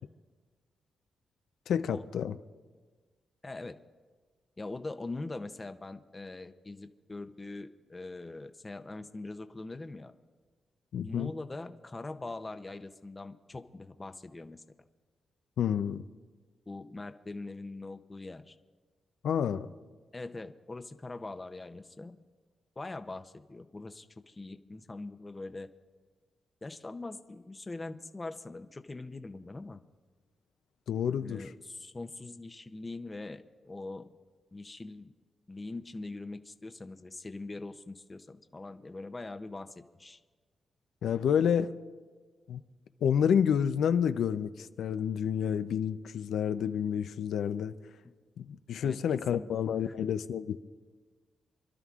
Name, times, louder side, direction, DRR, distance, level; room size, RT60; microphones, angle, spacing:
voice 1, 1.7-2.3 10.9-11.3 15.6-16.0 19.2-19.7 30.9-31.5 41.0-41.7 42.5-42.6 43.0-47.7 48.4-50.6, left 8 dB, 85° left, 10 dB, 0.5 m, -29 dB
voice 2, 3.4-3.8 4.6-10.1 11.0-14.6 16.7-18.6 20.1-22.2 22.8-25.7 26.6-29.8 31.2-34.0 34.5-35.1 35.5-39.7 40.0-40.2 48.8-49.5 49.8-49.9, left 2 dB, 20° left, 8 dB, 0.6 m, -42 dB
28.5 x 12.5 x 2.4 m, 1.4 s
wide cardioid pair, 125°, 0 cm